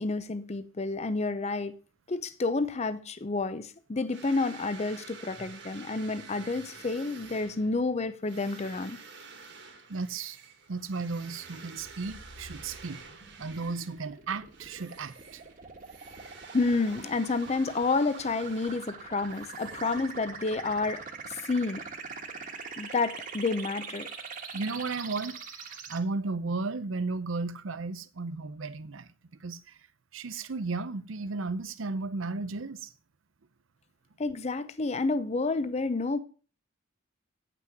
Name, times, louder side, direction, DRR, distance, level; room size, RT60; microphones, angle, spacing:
voice 1, 0.0-1.7 2.1-9.0 16.5-21.8 22.8-24.1 34.2-36.2, left 3 dB, 35° left, 0.6 m, -30 dB
sound 1, 4.1-14.1 14.5-20.5, right 5 dB, 60° right, 1.8 m, -50 dB
voice 2, 9.9-10.4 10.7-13.0 13.4-15.4 24.5-29.1 29.4-29.8 30.1-32.9, right 3 dB, 80° right, 0.7 m, -34 dB
sound 2, 11.8-26.0, right 5 dB, 40° right, 1.4 m, -43 dB
9.4 x 6.0 x 6.0 m
head